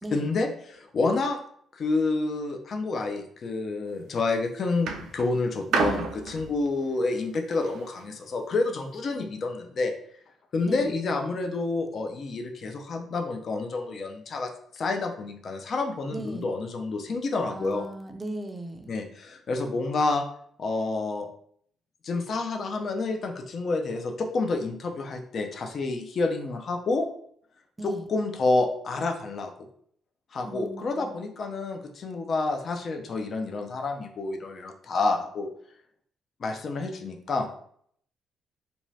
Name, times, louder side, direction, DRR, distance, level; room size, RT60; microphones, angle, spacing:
voice 1, 0.1-1.4 1.7-9.9 10.5-17.8 18.9-20.2 20.6-21.3 22.0-27.1 27.8-29.5 30.3-35.5 36.4-37.5, left 3 dB, 50° left, 4 dB, 0.4 m, -29 dB
sound 1, 3.8-4.2 4.9-8.1 8.9-9.0, right 5 dB, 80° right, 0.4 m, -32 dB
voice 2, 5.7-6.1 9.1-9.3 10.7-10.9 16.1-16.5 17.5-18.9 27.8-28.1 30.5-31.1, right 1 dB, 15° right, 5 dB, 0.4 m, -37 dB
2.6 x 2.3 x 3.1 m, 0.64 s
cardioid pair, 90°, 0 cm